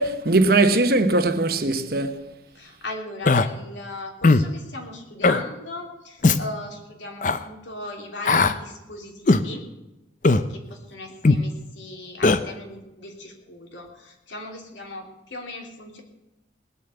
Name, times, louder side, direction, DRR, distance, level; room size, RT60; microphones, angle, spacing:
voice 1, 0.0-2.2, right 2 dB, 55° right, 1.0 m, -20 dB
voice 2, 2.5-9.6 10.5-16.0, left 2 dB, 85° left, 3.0 m, -38 dB
Human voice, 3.2-3.5 4.2-4.5 5.2-5.4 6.2-6.4 7.2-7.4 8.2-8.6 9.3-9.5 10.2-10.5 11.2-11.4 12.2-12.4, left 3 dB, 45° left, 0.6 m, -17 dB
19.5 x 6.9 x 8.0 m
head